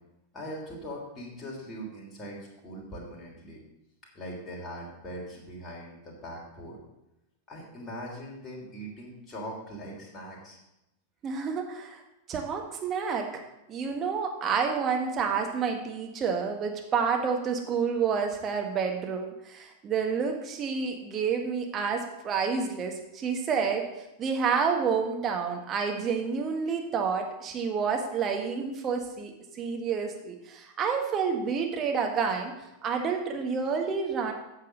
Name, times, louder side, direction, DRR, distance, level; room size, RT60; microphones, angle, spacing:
voice 1, 0.3-2.4 2.6-3.6 4.1-6.8 7.5-10.6, equal, 20° left, -3 dB, 3.2 m, -41 dB
voice 2, 11.2-12.0 12.3-13.4 13.7-32.5 32.8-34.3, right 6 dB, 30° right, 3 dB, 1.7 m, -29 dB
8.8 x 6.6 x 6.5 m, 0.92 s
figure-of-eight pair, 90°, 0 cm